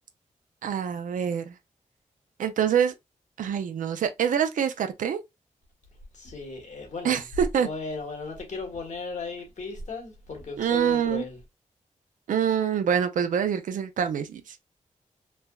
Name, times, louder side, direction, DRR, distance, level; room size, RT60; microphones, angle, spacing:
voice 1, 0.6-1.6 2.4-2.9 3.4-5.2 7.0-7.7 10.6-11.2 12.3-14.6, right 8 dB, 80° right, 0.4 m, -25 dB
voice 2, 6.1-7.2 7.6-11.4, left 3 dB, 65° left, 1.2 m, -36 dB
3.2 x 2.1 x 2.2 m
cardioid pair, 55°, 13 cm